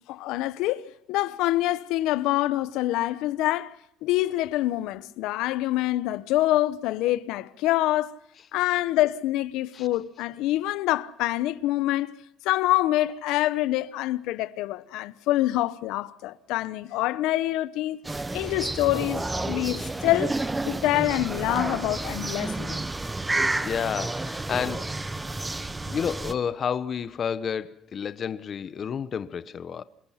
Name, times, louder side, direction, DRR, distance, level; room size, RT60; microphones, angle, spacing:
voice 1, 0.1-3.7 4.0-8.1 8.5-12.1 12.4-18.0 18.3-20.4 20.7-22.8, left 15 dB, 80° left, 1.0 m, -26 dB
sound 1, 18.0-26.3, right 2 dB, 10° right, 0.9 m, -30 dB
voice 2, 23.6-25.1 25.8-29.8, left 7 dB, 35° left, 0.9 m, -30 dB
27.0 x 18.5 x 5.8 m
cardioid pair, 165°, 0 cm